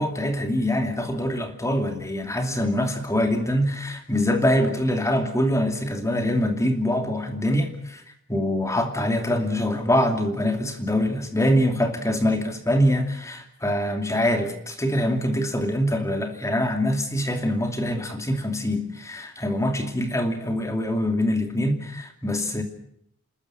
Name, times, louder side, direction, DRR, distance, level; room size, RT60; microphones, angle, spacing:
voice 1, 0.0-8.0 8.3-22.6, left 1 dB, 15° left, 5 dB, 2.6 m, -24 dB
28.0 x 14.0 x 9.8 m, 0.72 s
head